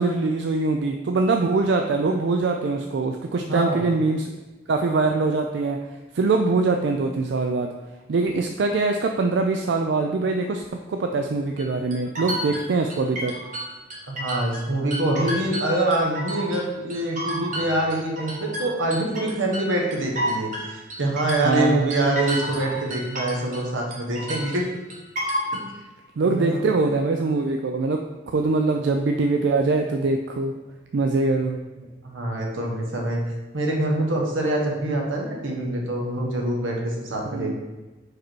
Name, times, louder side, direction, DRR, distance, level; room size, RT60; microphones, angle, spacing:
voice 1, 0.0-4.3 4.7-5.8 6.1-7.7 8.1-13.3 21.4-21.9 26.2-28.0 28.3-30.5 30.9-31.6 37.3-37.5, right 3 dB, 65° right, 4 dB, 0.4 m, -23 dB
voice 2, 3.5-3.9 14.1-24.6 25.5-25.6 26.2-26.7 32.0-33.2 33.5-37.5, right 1 dB, 85° right, -1 dB, 1.2 m, -25 dB
sound 1, 11.6-14.6 14.9-16.6 16.9-23.7 23.9-25.6, right 1 dB, 40° right, 1.1 m, -31 dB
4.8 x 4.7 x 4.6 m, 1.2 s
head